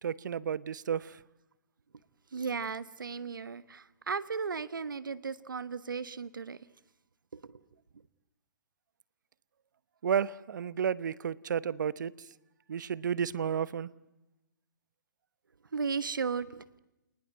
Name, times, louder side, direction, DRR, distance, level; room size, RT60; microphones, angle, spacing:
voice 1, 0.0-1.2 10.0-12.3 12.7-13.9, right 8 dB, 65° right, 20 dB, 0.9 m, -32 dB
voice 2, 2.3-6.6 7.3-7.6 15.7-16.8, right 5 dB, 85° right, 17 dB, 1.3 m, -35 dB
28.0 x 19.5 x 8.9 m, 0.98 s
hypercardioid pair, 140°, 11 cm